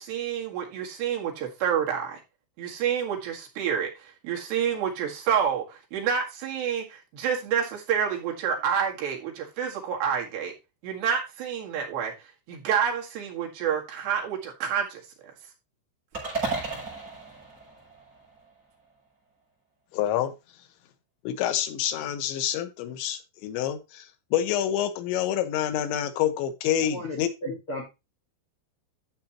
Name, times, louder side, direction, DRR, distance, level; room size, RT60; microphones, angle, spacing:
voice 1, 0.0-2.2 2.6-10.5 10.8-12.1 12.5-15.0, right 8 dB, 65° right, 0 dB, 3.8 m, -28 dB
sound 1, 16.1-18.5, right 3 dB, 20° right, 6.1 m, -34 dB
voice 2, 19.9-20.3 21.2-27.3, left 11 dB, 80° left, 8 dB, 3.3 m, -27 dB
voice 3, 26.9-27.8, left 1 dB, 45° left, 0 dB, 1.8 m, -35 dB
11.5 x 7.3 x 2.9 m, 0.25 s
omnidirectional pair, 5.4 m